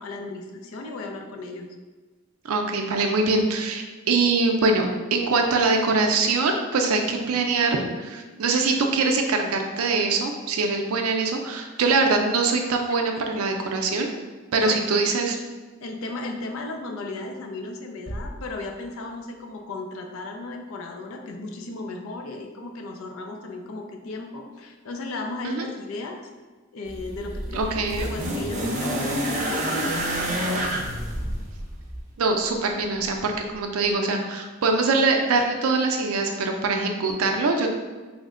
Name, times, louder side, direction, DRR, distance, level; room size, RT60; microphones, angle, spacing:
voice 1, 0.0-1.8 14.6-15.0 15.8-26.2 26.7-30.8, left 2 dB, 75° left, 3 dB, 0.4 m, -35 dB
voice 2, 2.4-14.1 14.5-15.4 25.4-25.7 27.5-28.1 32.2-37.7, right 3 dB, 85° right, 3 dB, 0.4 m, -23 dB
sound 1, 18.1-19.6, right 1 dB, ahead, 0.8 m, -39 dB
sound 2, 26.9-32.1 33.1-33.2, right 1 dB, 35° right, 0.6 m, -28 dB
3.1 x 2.1 x 3.6 m, 1.3 s
head